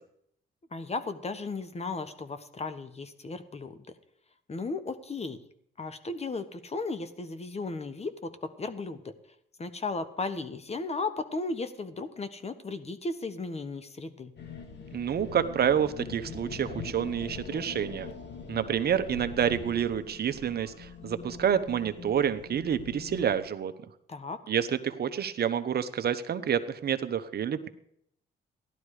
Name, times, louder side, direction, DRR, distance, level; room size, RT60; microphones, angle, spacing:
voice 1, 0.7-3.9 4.5-5.4 5.8-9.1 9.6-14.3 24.1-24.4, left 3 dB, 30° left, 11 dB, 1.3 m, -35 dB
sound 1, 14.4-23.4, left 5 dB, 60° left, 2.0 m, -43 dB
voice 2, 14.9-18.1 18.5-23.7 24.5-27.7, right 8 dB, 55° right, 10 dB, 1.0 m, -28 dB
15.0 x 12.0 x 4.9 m, 0.71 s
cardioid pair, 90°, 20 cm